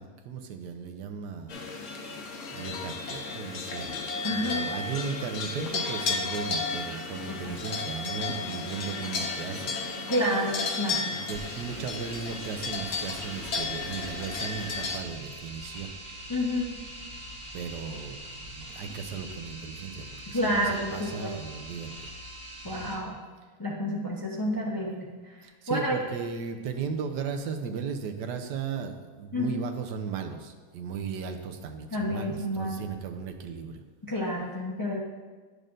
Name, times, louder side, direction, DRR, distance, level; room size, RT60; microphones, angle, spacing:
voice 1, 0.0-1.6 2.5-3.9 4.3-9.7 11.1-15.9 17.5-21.9 22.6-23.0 25.4-33.8, right 6 dB, 80° right, 6 dB, 1.2 m, -36 dB
sound 1, 1.5-15.0, left 4 dB, 55° left, 1.0 m, -33 dB
voice 2, 4.2-4.6 7.4-7.6 10.1-11.2 16.3-16.8 20.3-21.3 22.6-23.2 23.6-25.1 25.7-26.0 29.3-29.7 31.9-32.8 34.1-35.0, equal, 30° left, -3 dB, 0.3 m, -29 dB
sound 2, 11.3-23.0, equal, 45° right, 1.3 m, -43 dB
10.5 x 6.5 x 2.5 m, 1.4 s
omnidirectional pair, 1.9 m